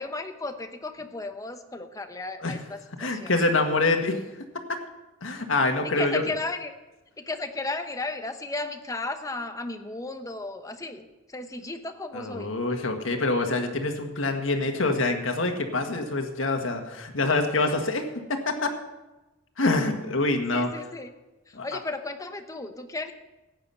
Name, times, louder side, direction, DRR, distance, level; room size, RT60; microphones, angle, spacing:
voice 1, 0.0-3.3 5.8-6.7 7.2-12.5 20.5-21.1 21.5-23.1, left 2 dB, 15° left, 7 dB, 0.9 m, -34 dB
voice 2, 3.0-4.2 5.2-6.2 12.1-18.7 19.6-20.7 21.5-21.6, left 2 dB, 85° left, 4 dB, 1.7 m, -25 dB
15.0 x 9.1 x 5.6 m, 1.0 s
head